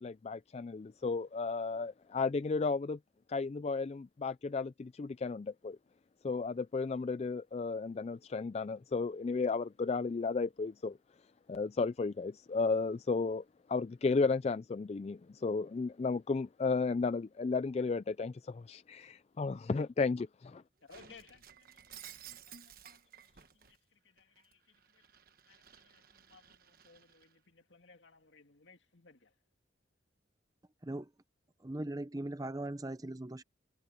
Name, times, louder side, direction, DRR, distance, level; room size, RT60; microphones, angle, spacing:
voice 1, 0.0-3.0 3.3-5.8 6.2-11.0 11.5-20.6, left 4 dB, 35° left, 0.3 m, -34 dB
voice 2, 20.8-25.1 25.5-29.3, left 4 dB, 75° left, 2.2 m, -62 dB
Shatter, 20.9-23.8 24.2-27.3, right 9 dB, 50° right, 1.3 m, -55 dB
voice 3, 31.6-33.4, right 1 dB, 20° right, 0.7 m, -39 dB
head